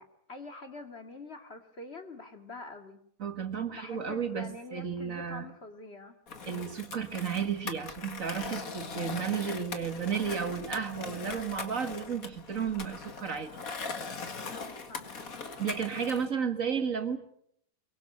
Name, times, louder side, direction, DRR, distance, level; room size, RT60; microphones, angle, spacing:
voice 1, 0.0-3.0 3.7-6.1 14.5-15.3, left 3 dB, 45° left, 6 dB, 2.7 m, -46 dB
voice 2, 3.2-5.5 6.4-13.6 15.6-17.2, right 7 dB, 60° right, 8 dB, 2.3 m, -33 dB
Skateboard, 6.3-16.3, left 4 dB, 70° left, 2.4 m, -41 dB
23.5 x 23.0 x 8.1 m, 0.69 s
omnidirectional pair, 1.5 m